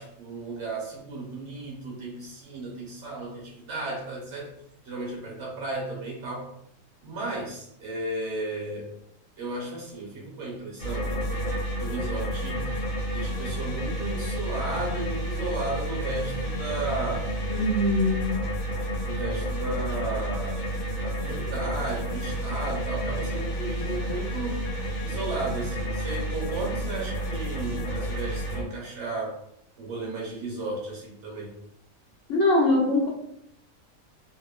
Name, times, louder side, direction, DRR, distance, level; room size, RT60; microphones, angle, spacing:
voice 1, 0.0-4.5 4.8-6.5 7.0-8.9 9.4-11.1 11.8-12.9 13.1-17.4 19.0-24.6 25.0-29.4 29.8-31.5, right 2 dB, 60° right, -3 dB, 1.0 m, -34 dB
sound 1, 10.8-28.6, right 1 dB, 55° left, 0.7 m, -30 dB
voice 2, 17.5-18.4 32.3-33.1, left 2 dB, 70° left, -1 dB, 0.9 m, -22 dB
2.8 x 2.1 x 2.2 m, 0.72 s
omnidirectional pair, 1.5 m